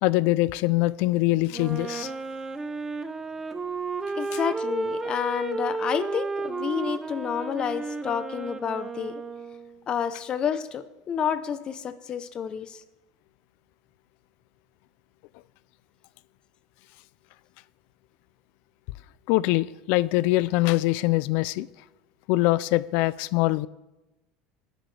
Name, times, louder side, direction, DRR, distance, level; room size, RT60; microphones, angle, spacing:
voice 1, 0.0-2.1 19.3-21.7 22.3-23.7, left 18 dB, 65° left, 0.4 m, -23 dB
Wind instrument woodwind instrument, 1.5-9.8, right 3 dB, 15° right, 0.7 m, -33 dB
voice 2, 4.2-9.1 9.9-12.8, left 7 dB, 30° left, 0.8 m, -29 dB
25.0 x 10.0 x 3.4 m
supercardioid pair, 140°, 3 cm